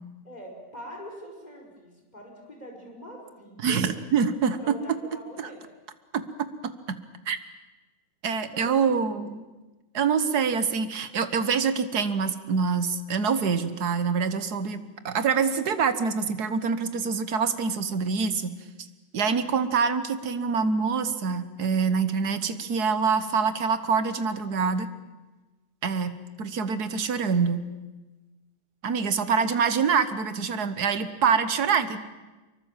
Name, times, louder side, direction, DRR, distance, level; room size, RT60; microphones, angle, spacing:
voice 1, 0.2-3.8 4.6-5.6 8.5-9.3, equal, 20° left, 0 dB, 5.3 m, -43 dB
voice 2, 3.6-4.6 5.4-5.5 6.1-6.5 6.9-7.0 7.3-7.4 8.2-9.4 9.9-18.6 19.1-24.9 25.8-27.6 28.8-32.0, right 5 dB, 65° right, 11 dB, 1.8 m, -25 dB
24.5 x 23.0 x 7.4 m, 1.2 s
omnidirectional pair, 1.9 m